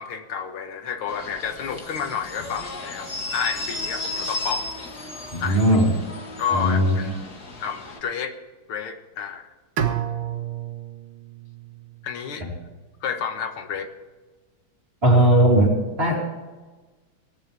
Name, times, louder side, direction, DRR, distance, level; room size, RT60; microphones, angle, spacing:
voice 1, 0.0-4.7 5.4-5.6 6.4-7.1 7.6-8.4 8.7-9.5 12.0-12.4 13.0-13.9, left 7 dB, 80° left, 7 dB, 2.1 m, -30 dB
sound 1, 1.1-8.0, left 2 dB, 50° left, 2.2 m, -34 dB
voice 2, 5.3-5.9 6.5-7.0 12.4-12.5 15.0-16.2, right 1 dB, 25° right, -3 dB, 3.4 m, -18 dB
Bowed string instrument, 9.8-12.8, right 9 dB, 80° right, 2.1 m, -31 dB
17.5 x 11.0 x 3.5 m, 1.3 s
omnidirectional pair, 2.3 m